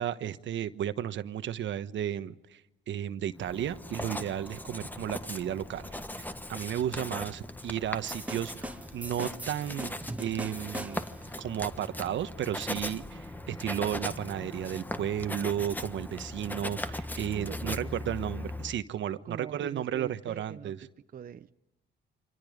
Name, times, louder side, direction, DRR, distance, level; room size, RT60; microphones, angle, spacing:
voice 1, 0.0-2.6 2.9-9.9 10.2-11.0 11.4-20.8, right 10 dB, 70° right, 1.2 m, -33 dB
Writing, 3.4-18.8, left 1 dB, 10° left, 1.4 m, -39 dB
sound 1, 8.1-11.3, right 1 dB, 5° right, 1.9 m, -40 dB
voice 2, 17.3-18.2 19.2-21.5, right 7 dB, 45° right, 0.8 m, -43 dB
29.5 x 26.0 x 5.2 m
cardioid pair, 90°, 20 cm